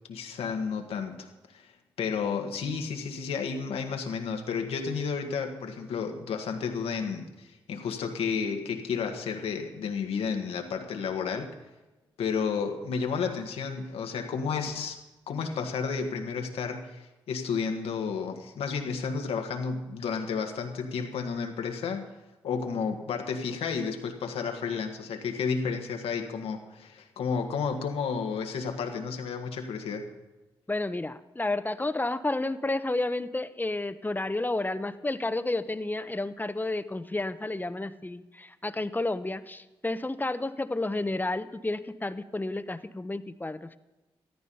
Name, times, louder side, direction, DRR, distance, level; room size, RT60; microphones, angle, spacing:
voice 1, 0.1-1.7 2.0-11.5 12.2-15.0 15.3-22.1 22.4-30.1, left 5 dB, 85° left, 4 dB, 1.7 m, -32 dB
voice 2, 30.7-43.8, left 2 dB, 20° left, 12 dB, 0.9 m, -31 dB
14.0 x 13.0 x 5.6 m, 1.1 s
supercardioid pair, 55°, 10 cm